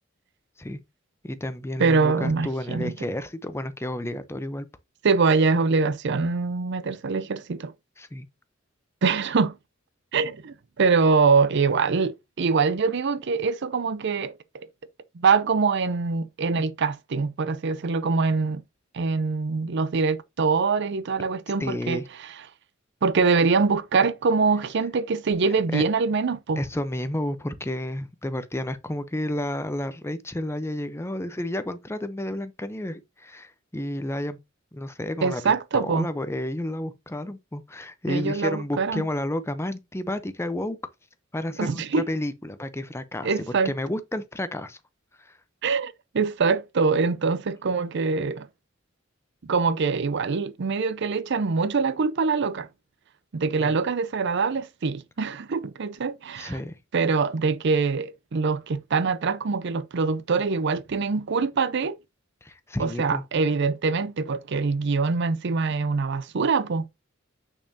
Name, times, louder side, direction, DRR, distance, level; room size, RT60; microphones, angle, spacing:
voice 1, 1.2-4.7 8.0-8.3 21.6-22.0 25.7-25.8 26.6-34.4 34.7-40.8 41.3-44.8 45.2-45.3 53.6-53.8 56.4-56.8 62.4-63.2, left 1 dB, 15° left, 0.6 m, -31 dB
voice 2, 1.8-2.9 5.0-7.7 9.0-9.5 10.1-14.7 15.1-18.6 18.9-22.0 23.0-26.6 35.2-36.1 38.1-39.0 41.6-42.1 43.2-43.7 45.6-48.5 49.4-52.7 53.3-56.6 56.9-62.0 62.8-66.8, right 4 dB, 60° right, 0.5 m, -24 dB
6.6 x 6.0 x 2.7 m
head